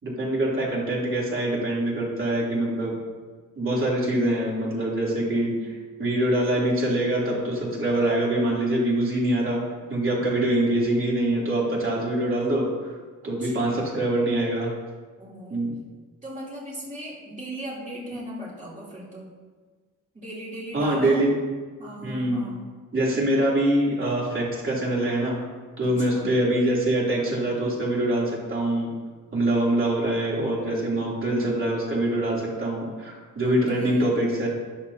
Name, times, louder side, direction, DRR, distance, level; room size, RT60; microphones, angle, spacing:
voice 1, 0.0-2.9 3.5-5.5 6.0-9.6 9.9-12.7 13.2-14.7 15.5-15.7 20.7-21.3 22.0-22.4 22.9-25.4 25.8-28.9 29.3-34.5, right 1 dB, 40° right, -5 dB, 3.3 m, -24 dB
voice 2, 5.1-5.8 13.2-14.0 15.2-15.6 16.2-19.3 20.1-21.2 21.8-22.6 26.0-26.4 33.4-34.1, right 1 dB, 25° right, -6 dB, 3.3 m, -38 dB
13.5 x 10.0 x 2.9 m, 1.4 s
wide cardioid pair, 165°, 33 cm